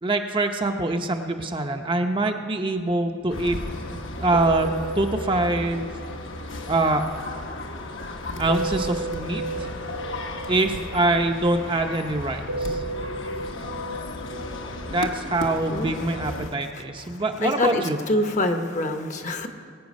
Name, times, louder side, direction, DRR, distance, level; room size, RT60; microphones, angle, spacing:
voice 1, 0.0-3.6 4.2-4.7 5.0-5.9 6.7-7.0 8.4-9.7 10.5-12.8 14.8-18.0, right 2 dB, 25° right, 4 dB, 0.6 m, -24 dB
sound 1, 3.3-16.5, left 2 dB, 70° left, 1.1 m, -34 dB
sound 2, 3.4-3.5 3.7-4.0 4.2-7.6 8.5-12.1 12.5-15.0, right 2 dB, 70° right, 0.5 m, -34 dB
voice 2, 17.0-19.5, left 1 dB, 35° left, 6 dB, 0.9 m, -26 dB
21.5 x 8.9 x 5.3 m, 2.3 s
head